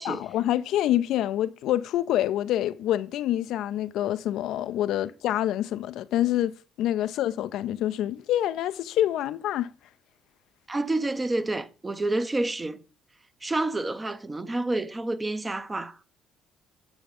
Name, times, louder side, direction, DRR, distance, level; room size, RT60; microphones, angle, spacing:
voice 1, 0.0-6.5 6.8-9.7, left 12 dB, 60° left, 0.4 m, -26 dB
voice 2, 10.7-12.8 13.4-16.0, right 2 dB, 20° right, 0.8 m, -29 dB
9.1 x 7.7 x 3.9 m
figure-of-eight pair, 45°, 0 cm